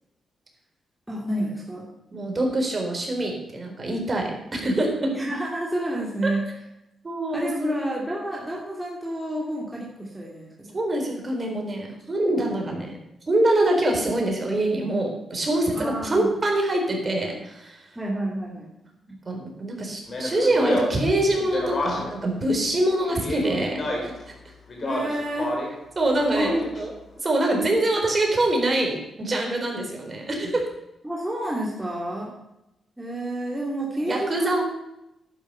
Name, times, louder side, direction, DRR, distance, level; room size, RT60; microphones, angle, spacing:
voice 1, 1.1-1.9 5.0-6.4 7.3-10.8 15.7-16.3 18.0-18.7 19.1-19.2 24.8-25.6 26.3-26.6 31.0-32.3 33.0-34.6, right 1 dB, 10° right, -3 dB, 2.7 m, -29 dB
voice 2, 2.1-4.9 6.2-6.3 7.0-7.7 10.7-13.0 13.3-17.9 19.3-24.1 26.0-26.9 27.2-30.6 34.0-34.6, right 1 dB, 35° right, 1 dB, 4.1 m, -24 dB
Speech, 20.1-22.2 23.1-24.2 24.7-25.8 26.2-26.8, left 2 dB, 50° left, 3.7 m, -29 dB
11.0 x 9.8 x 5.7 m, 0.88 s
cardioid pair, 70°, 0 cm